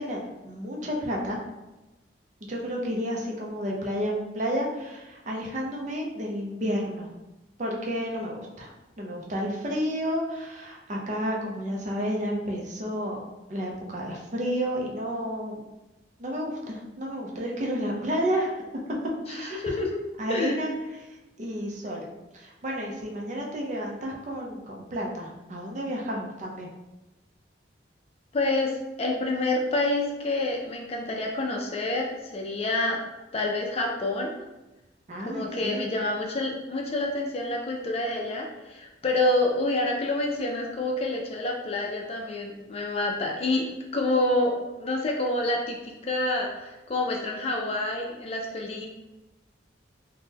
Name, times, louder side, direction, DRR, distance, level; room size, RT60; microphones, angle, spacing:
voice 1, 0.0-1.4 2.5-7.1 7.6-8.7 9.0-13.2 13.5-15.6 16.2-18.5 19.3-19.8 20.2-20.7 21.4-26.7 35.1-35.9, equal, 40° right, -2 dB, 0.6 m, -31 dB
voice 2, 19.3-20.0 20.3-20.6 28.3-33.0 33.3-34.4 35.3-43.7 43.9-48.9, left 2 dB, 30° left, 0 dB, 0.4 m, -28 dB
3.5 x 2.1 x 2.8 m, 1.0 s
head